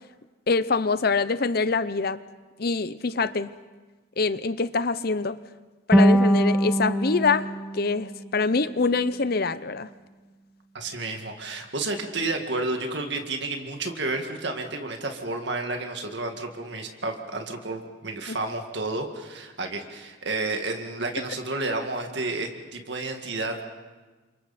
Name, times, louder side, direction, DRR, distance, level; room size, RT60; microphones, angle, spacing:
voice 1, 0.5-2.2 2.6-3.5 4.2-5.4 5.9-7.5 7.7-9.9 18.3-18.4, left 4 dB, 50° left, 14 dB, 0.7 m, -25 dB
sound 1, 5.9-9.0, right 1 dB, 5° right, 1.5 m, -23 dB
voice 2, 10.7-23.6, right 2 dB, 60° right, 4 dB, 2.0 m, -31 dB
29.5 x 27.0 x 4.3 m, 1.3 s
head